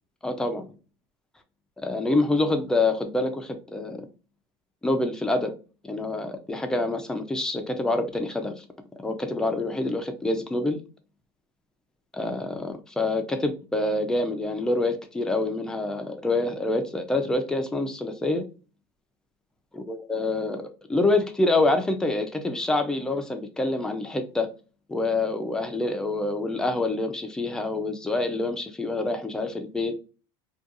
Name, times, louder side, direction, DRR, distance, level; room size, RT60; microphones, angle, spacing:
voice 1, 0.2-0.7 1.8-4.1 4.8-5.5 5.8-8.6 9.0-10.8 12.1-18.4 19.7-20.6 20.9-24.5 24.9-29.9, left 2 dB, 5° left, 6 dB, 0.3 m, -26 dB
2.4 x 2.2 x 2.7 m, 0.34 s
cardioid pair, 155°, 12 cm